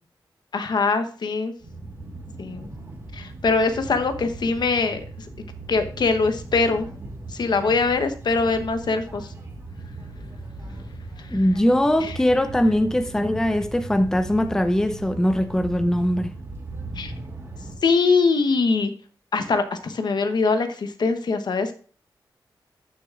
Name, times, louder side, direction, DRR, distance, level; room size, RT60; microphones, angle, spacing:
voice 1, 0.5-1.5 2.4-2.7 3.1-5.0 5.7-6.9 7.3-9.3 12.0-12.1 17.0-17.1 17.8-18.9 19.3-21.7, left 4 dB, 65° left, 1.0 m, -22 dB
sound 1, 1.6-17.7, right 2 dB, 35° right, 2.5 m, -38 dB
voice 2, 11.3-16.3, left 1 dB, 5° left, 0.5 m, -21 dB
13.5 x 6.6 x 2.4 m
wide cardioid pair, 130°, 8 cm